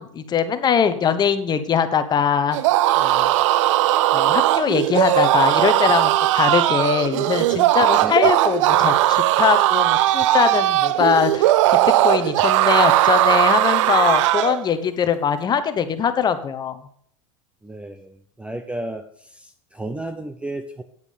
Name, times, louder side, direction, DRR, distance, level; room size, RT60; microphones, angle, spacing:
voice 1, 0.0-2.6 3.0-3.3 4.1-16.8, left 7 dB, 25° left, 10 dB, 1.0 m, -22 dB
sound 1, 2.5-14.6, right 15 dB, 70° right, 0.5 m, -18 dB
voice 2, 7.8-8.3 17.6-20.8, right 1 dB, 5° right, 9 dB, 0.6 m, -33 dB
9.5 x 8.1 x 5.0 m, 0.63 s
supercardioid pair, 120°, 16 cm